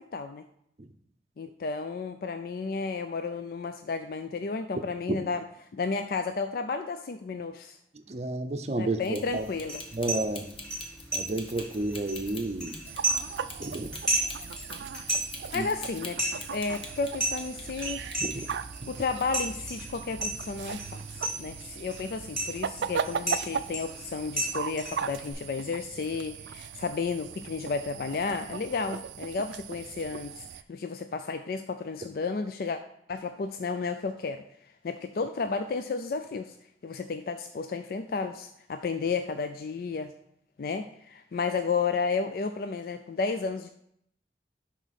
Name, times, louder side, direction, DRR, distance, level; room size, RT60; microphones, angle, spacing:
voice 1, 0.1-0.4 1.4-5.4 5.7-7.8 8.8-9.8 15.5-16.2 16.5-18.2 18.8-32.8 33.1-34.4 34.8-36.5 36.8-40.1 40.6-43.7, left 4 dB, 55° left, 8 dB, 0.4 m, -32 dB
voice 2, 8.1-9.5 9.9-10.5 11.1-12.8 13.6-13.9 15.5-15.7 18.2-18.4, right 2 dB, 40° right, 7 dB, 0.6 m, -31 dB
sound 1, 9.0-17.8 18.1-19.5 19.7-20.0, left 3 dB, 30° left, 1.0 m, -44 dB
sound 2, 9.2-25.3, right 2 dB, ahead, 2.9 m, -35 dB
sound 3, 12.8-30.6, right 7 dB, 85° right, 0.4 m, -38 dB
11.0 x 4.0 x 4.1 m, 0.72 s
head